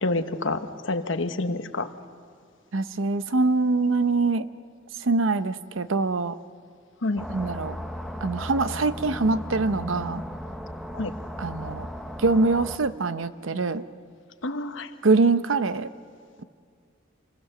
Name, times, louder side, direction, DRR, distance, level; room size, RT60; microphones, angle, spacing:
voice 1, 0.0-1.9 7.0-7.3 10.9-11.1 14.4-14.9, left 2 dB, 70° left, 9 dB, 1.1 m, -28 dB
voice 2, 2.7-4.5 5.0-6.3 7.3-7.8 8.2-10.2 11.4-11.9 12.2-13.8 15.0-15.9, right 3 dB, 80° right, 13 dB, 0.8 m, -24 dB
sound 1, 7.2-12.8, equal, ahead, 0.9 m, -36 dB
27.5 x 20.5 x 6.7 m, 2.1 s
head